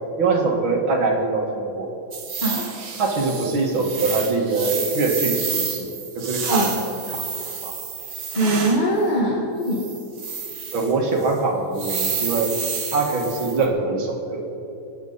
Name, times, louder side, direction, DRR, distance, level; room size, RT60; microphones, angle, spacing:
voice 1, 0.0-1.9 3.0-7.2 7.6-7.7 10.7-12.5 12.9-14.5, right 3 dB, 75° right, 1 dB, 2.6 m, -23 dB
sound 1, 2.1-8.9 9.6-10.9 11.2-11.3 11.7-13.7, right 5 dB, 60° right, 1.9 m, -30 dB
voice 2, 8.3-9.9, right 1 dB, 25° left, -3 dB, 1.6 m, -21 dB
27.5 x 9.4 x 4.1 m, 3.0 s
omnidirectional pair, 2.2 m